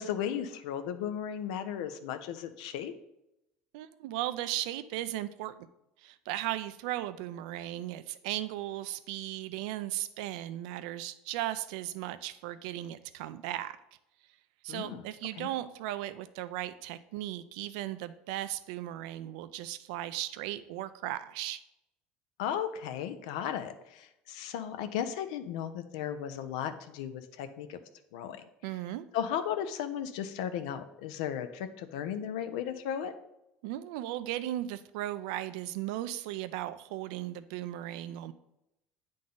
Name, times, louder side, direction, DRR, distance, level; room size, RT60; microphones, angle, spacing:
voice 1, 0.0-2.9 14.7-15.1 15.4-15.5 22.4-27.8 28.1-28.4 29.1-33.1, left 9 dB, 90° left, 10 dB, 0.6 m, -35 dB
voice 2, 3.7-5.7 6.0-13.8 14.6-21.6 28.6-29.1 33.6-38.3, right 14 dB, 85° right, 13 dB, 0.4 m, -36 dB
8.5 x 3.8 x 3.8 m, 0.86 s
supercardioid pair, 115°, 4 cm